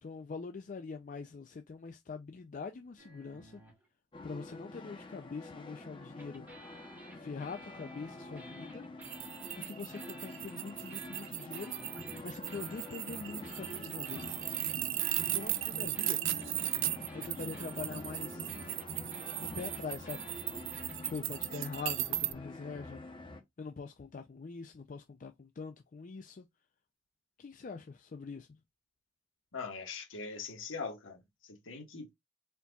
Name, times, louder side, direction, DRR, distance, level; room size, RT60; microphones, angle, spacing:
voice 1, 0.0-3.6 4.2-6.5 7.1-8.8 9.5-11.7 12.2-14.4 15.2-16.2 17.1-18.5 19.4-20.4 21.1-23.0 23.6-26.5 27.4-28.6, left 4 dB, 40° left, 0.4 m, -43 dB
sound 1, 3.0-3.9 6.2-21.1, equal, 10° right, 1.5 m, -54 dB
sound 2, 4.1-23.4, left 2 dB, 25° left, 0.9 m, -47 dB
sound 3, 9.0-22.3, right 16 dB, 75° right, 0.4 m, -37 dB
voice 2, 29.5-32.1, left 4 dB, 90° left, 1.3 m, -42 dB
4.3 x 4.0 x 2.3 m
head